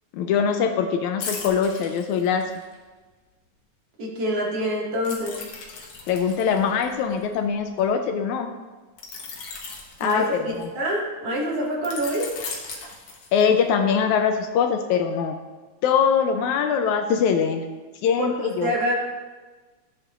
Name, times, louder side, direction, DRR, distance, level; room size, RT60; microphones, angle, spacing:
voice 1, 0.1-2.4 6.1-8.5 10.0-10.7 13.3-15.4 15.8-17.7 18.0-18.7, left 7 dB, 80° left, 5 dB, 1.9 m, -22 dB
sound 1, 1.2-2.7 5.0-7.8 9.0-10.8 11.8-13.7 14.1-14.3, left 5 dB, 60° left, 2.2 m, -37 dB
voice 2, 4.0-5.3 10.0-10.4 10.7-12.3 18.2-18.9, equal, 55° right, -4 dB, 2.8 m, -26 dB
15.0 x 8.4 x 2.5 m, 1.3 s
omnidirectional pair, 3.6 m